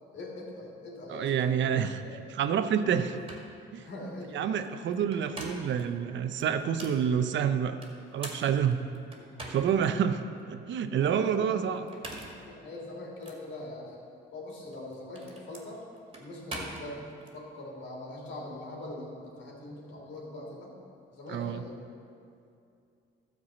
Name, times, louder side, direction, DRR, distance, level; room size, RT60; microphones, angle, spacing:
voice 1, 0.1-1.7 2.0-2.1 2.9-3.0 3.7-4.6 9.5-9.6 9.9-10.0 11.0-11.6 12.5-14.0 14.3-15.8 16.2-17.0 17.3-20.8 21.1-21.8, left 2 dB, 65° left, -2 dB, 2.9 m, -42 dB
voice 2, 1.1-2.0 2.4-3.2 3.7-3.8 4.3-7.8 8.1-8.8 9.5-10.2 10.5-11.8 21.3-21.6, right 8 dB, 70° right, 9 dB, 0.7 m, -28 dB
sound 1, 2.9-3.0 3.3-3.5 4.9-5.8 6.4-7.0 7.8-9.9 10.4-10.5 11.8-12.5 13.2-13.4 14.6-17.3, right 2 dB, 25° right, 2.2 m, -43 dB
12.5 x 4.8 x 7.6 m, 2.5 s
cardioid pair, 90°, 20 cm